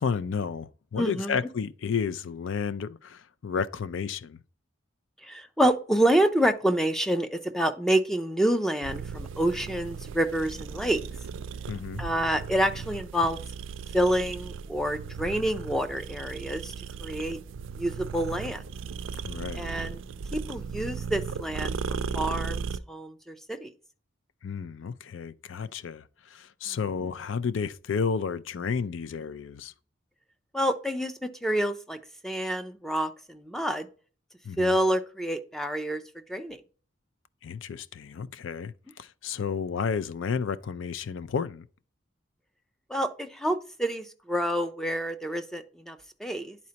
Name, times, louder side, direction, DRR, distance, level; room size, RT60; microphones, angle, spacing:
voice 1, 0.0-4.4 11.7-12.0 19.2-19.7 24.4-29.7 34.4-34.8 37.4-41.7, left 6 dB, 75° left, 0.4 m, -32 dB
voice 2, 1.0-1.4 5.2-11.0 12.0-13.4 13.9-16.7 17.0-17.4 17.8-18.6 19.5-20.0 20.3-23.7 26.7-26.8 30.5-32.0 32.2-33.9 34.6-36.0 36.3-36.6 42.9-46.6, right 1 dB, ahead, 0.4 m, -28 dB
sound 1, 8.8-22.8, right 6 dB, 75° right, 0.4 m, -36 dB
10.5 x 4.2 x 2.8 m
head